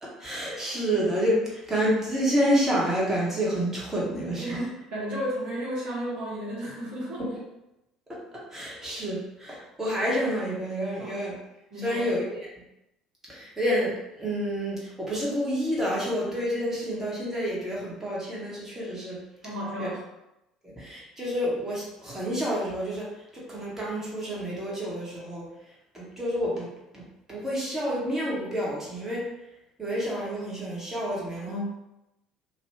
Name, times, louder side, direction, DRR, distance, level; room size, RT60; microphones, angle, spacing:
voice 1, 0.0-4.5 8.1-8.2 8.5-11.3 11.8-12.5 13.3-19.2 19.8-19.9 20.6-25.4 25.9-26.7 26.9-27.0 27.3-29.2 29.8-31.6, equal, 15° right, -6 dB, 1.3 m, -29 dB
voice 2, 4.4-7.2 11.0-11.2 11.7-12.1 19.4-20.0 31.4-31.7, equal, 60° right, -6 dB, 1.2 m, -33 dB
3.0 x 2.5 x 3.2 m, 0.90 s
figure-of-eight pair, 60°, 2 cm